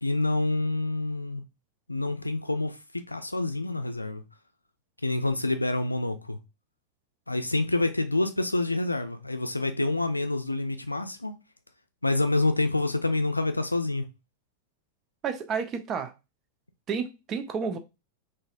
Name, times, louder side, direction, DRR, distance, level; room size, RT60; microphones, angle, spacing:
voice 1, 0.0-1.4 1.9-4.2 5.0-6.4 7.3-11.3 12.0-14.1, left 2 dB, 85° left, 0.4 m, -27 dB
voice 2, 15.2-16.1 16.9-17.8, right 6 dB, 30° right, 0.5 m, -31 dB
4.0 x 2.6 x 2.5 m
figure-of-eight pair, 90°, 0 cm